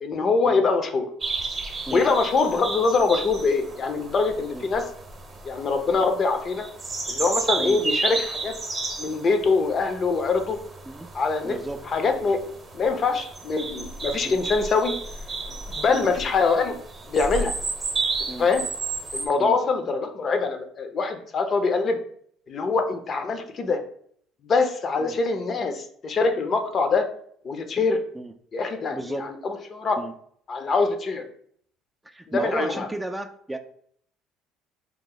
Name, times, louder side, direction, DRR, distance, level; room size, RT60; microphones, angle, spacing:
voice 1, 0.0-1.1 1.9-4.8 5.4-6.7 7.1-8.5 9.0-10.6 11.1-11.6 11.9-12.4 12.7-14.9 15.5-16.8 17.1-17.5 18.4-18.6 19.1-22.0 22.5-23.8 24.4-27.1 27.4-28.0 28.5-30.0 30.5-31.2 32.3-32.9, left 4 dB, 45° left, 6 dB, 0.5 m, -24 dB
sound 1, 1.2-19.3, right 3 dB, 30° right, 0.8 m, -33 dB
voice 2, 11.4-11.9 14.2-14.4 15.9-16.1 18.3-18.5 19.4-19.6 25.0-25.2 28.1-28.3 28.9-29.3 30.0-30.1 32.0-33.6, right 1 dB, 15° right, 7 dB, 0.3 m, -34 dB
2.9 x 2.0 x 3.8 m, 0.62 s
hypercardioid pair, 65°, 0 cm